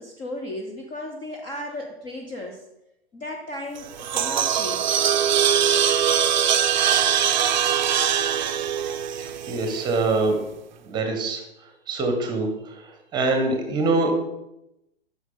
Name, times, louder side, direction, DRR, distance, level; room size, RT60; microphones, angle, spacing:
voice 1, 0.0-2.6 3.1-4.9, left 1 dB, 15° left, 1 dB, 0.6 m, -35 dB
sound 1, 3.8-10.0, right 9 dB, 50° right, 0.5 m, -22 dB
voice 2, 9.5-10.4 10.8-11.4 11.9-12.5 13.1-14.1, right 3 dB, 15° right, 4 dB, 1.2 m, -23 dB
7.9 x 6.1 x 3.8 m, 0.88 s
figure-of-eight pair, 115°, 31 cm